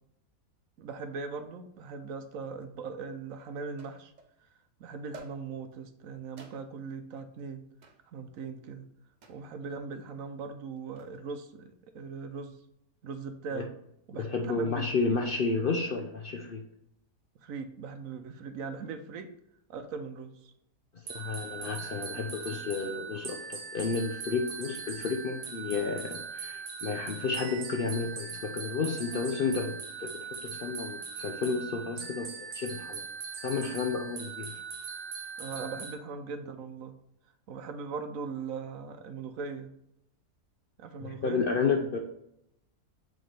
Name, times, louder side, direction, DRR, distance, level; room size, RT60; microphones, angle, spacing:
voice 1, 0.8-4.1 4.8-7.6 8.1-8.9 9.3-12.6 13.0-13.7 14.1-14.8 17.4-19.3 19.7-20.5 35.4-36.9 37.5-39.7 40.8-41.4, right 5 dB, 70° right, 8 dB, 1.0 m, -40 dB
sound 1, 2.6-2.7 3.8-4.4 5.1-5.8 6.4-6.9 7.8-8.1 9.2-9.6 10.8-11.2, right 3 dB, 45° right, 0.6 m, -51 dB
voice 2, 14.1-16.6 20.9-33.1 33.4-34.6 41.0-42.0, left 4 dB, 55° left, 3 dB, 0.6 m, -32 dB
sound 2, 21.1-36.0, right 6 dB, 90° right, 1.4 m, -40 dB
7.6 x 3.8 x 3.3 m, 0.77 s
omnidirectional pair, 1.5 m